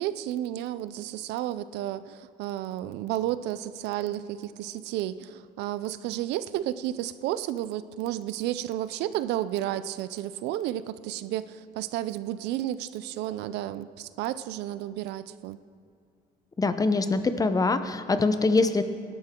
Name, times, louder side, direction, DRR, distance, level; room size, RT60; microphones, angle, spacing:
voice 1, 0.0-15.6, right 13 dB, 85° right, 14 dB, 0.5 m, -32 dB
voice 2, 16.6-18.9, left 3 dB, 20° left, 10 dB, 0.8 m, -24 dB
18.0 x 12.0 x 3.7 m, 2.2 s
cardioid pair, 110°, 17 cm